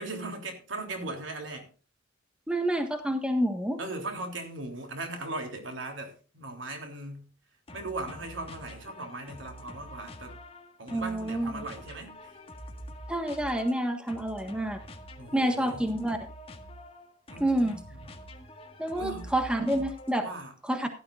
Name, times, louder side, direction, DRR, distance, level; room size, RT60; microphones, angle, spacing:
voice 1, 0.0-1.7 3.8-7.3 7.7-10.3 10.8-12.3 15.1-15.9 17.3-18.1 18.9-19.3 20.2-20.5, right 2 dB, 75° right, 3.4 m, -38 dB
voice 2, 2.5-3.8 10.9-11.6 13.1-14.8 15.3-16.2 17.4-17.8 18.8-20.2 20.7-20.9, right 1 dB, 5° right, 1.4 m, -28 dB
sound 1, 7.7-20.4, equal, 30° left, 1.7 m, -46 dB
16.5 x 12.0 x 2.5 m
head